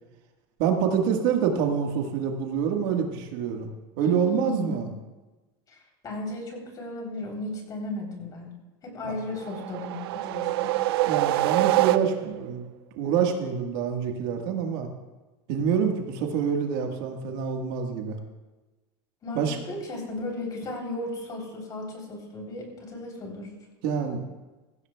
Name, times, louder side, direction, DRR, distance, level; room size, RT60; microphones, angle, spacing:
voice 1, 0.6-3.7 4.0-4.9 9.0-9.2 11.1-12.7 12.9-14.9 15.5-18.2 19.3-19.6 23.8-24.2, right 7 dB, 65° right, 3 dB, 1.6 m, -26 dB
voice 2, 4.0-4.8 5.7-8.5 8.8-10.7 19.2-23.5, left 1 dB, 30° left, 0 dB, 3.5 m, -35 dB
sound 1, 9.4-12.5, right 17 dB, 85° right, 0.4 m, -25 dB
16.0 x 15.5 x 2.3 m, 1.2 s
supercardioid pair, 135°, 13 cm